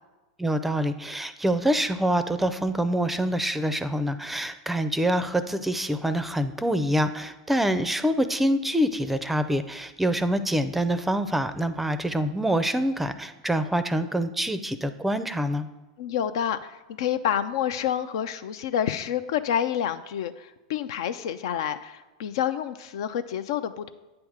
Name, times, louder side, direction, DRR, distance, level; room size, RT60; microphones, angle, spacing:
voice 1, 0.4-15.7, equal, 5° right, 11 dB, 0.5 m, -26 dB
voice 2, 16.0-23.9, left 9 dB, 65° left, 11 dB, 0.4 m, -28 dB
8.5 x 3.5 x 6.5 m, 1.1 s
hypercardioid pair, 95°, 3 cm